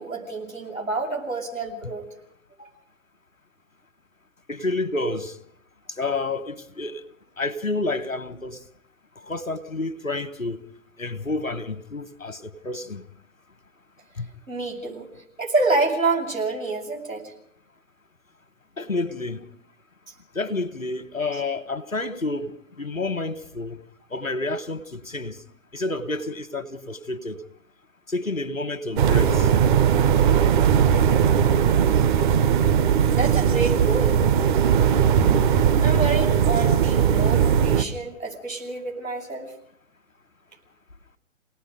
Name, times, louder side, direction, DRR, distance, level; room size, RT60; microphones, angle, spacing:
voice 1, 0.0-2.1 2.6-2.7 14.5-15.1 15.4-17.3 33.1-34.3 35.8-39.5, right 3 dB, 90° right, 7.5 m, -27 dB
voice 2, 4.5-5.4 6.0-7.0 7.4-8.6 9.3-10.6 11.0-13.0 14.2-14.3 18.8-19.4 20.3-22.5 22.8-23.8 24.1-25.4 25.7-27.4 28.1-29.5, left 2 dB, 85° left, 1.5 m, -29 dB
sound 1, 29.0-37.8, right 8 dB, 40° right, 1.1 m, -19 dB
28.5 x 18.5 x 5.2 m
figure-of-eight pair, 115°, 39 cm